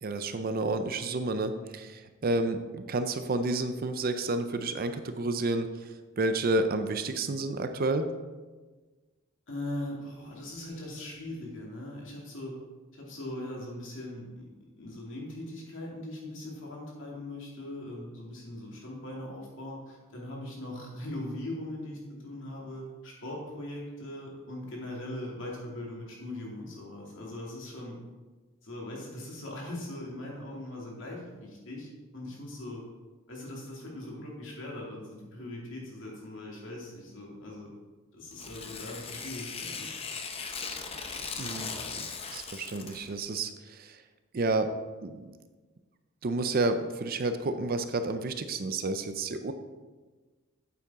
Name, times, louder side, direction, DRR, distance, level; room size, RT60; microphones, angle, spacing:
voice 1, 0.0-5.9 6.2-8.1 41.4-44.0 44.3-44.7 45.0-45.3 46.2-49.5, right 2 dB, 40° right, 9 dB, 0.5 m, -30 dB
voice 2, 9.5-12.6 12.9-14.5 14.8-27.9 28.6-32.9 33.3-37.7 38.1-39.9, left 1 dB, 60° left, -3 dB, 2.6 m, -40 dB
Tearing, 38.3-43.1, left 5 dB, 25° left, 0.7 m, -38 dB
8.5 x 8.4 x 3.6 m, 1.3 s
head